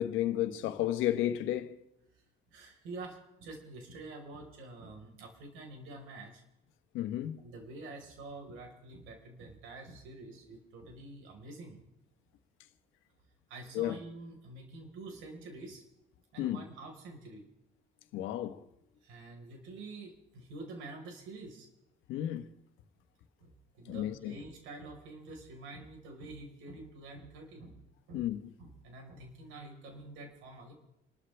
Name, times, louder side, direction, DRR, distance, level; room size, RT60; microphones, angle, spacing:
voice 1, 0.0-1.8 6.9-7.4 13.7-14.0 16.4-16.6 18.1-18.6 22.1-22.5 23.9-24.3 28.1-28.4, left 12 dB, 85° left, 1.2 m, -32 dB
voice 2, 2.5-6.4 7.4-11.8 13.5-15.8 16.3-17.4 19.0-21.7 23.4-27.8 28.1-28.3 28.6-30.7, right 2 dB, 85° right, 4.5 m, -47 dB
28.5 x 13.0 x 3.4 m
cardioid pair, 100°, 20 cm